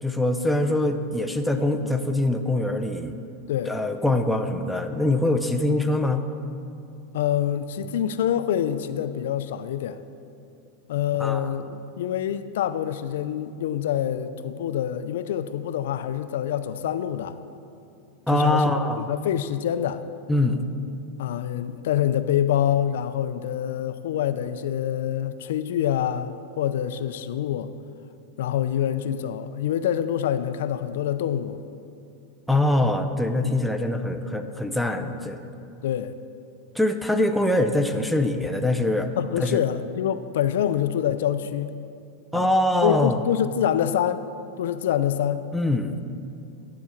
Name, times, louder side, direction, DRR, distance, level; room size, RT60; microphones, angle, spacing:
voice 1, 0.0-3.2 3.7-6.3 11.2-11.5 18.3-19.0 20.3-20.7 32.5-35.4 36.8-39.1 39.4-39.6 42.3-43.2 45.5-45.9, left 1 dB, ahead, 4 dB, 0.4 m, -23 dB
voice 2, 7.1-10.0 10.9-17.4 18.3-20.0 21.2-27.7 28.4-31.6 32.7-32.8 33.4-33.6 35.8-36.1 39.2-41.7 42.3-42.5 42.8-44.2 44.6-45.5, left 10 dB, 80° left, 12 dB, 0.4 m, -26 dB
9.5 x 7.2 x 4.4 m, 2.5 s
supercardioid pair, 150°, 0 cm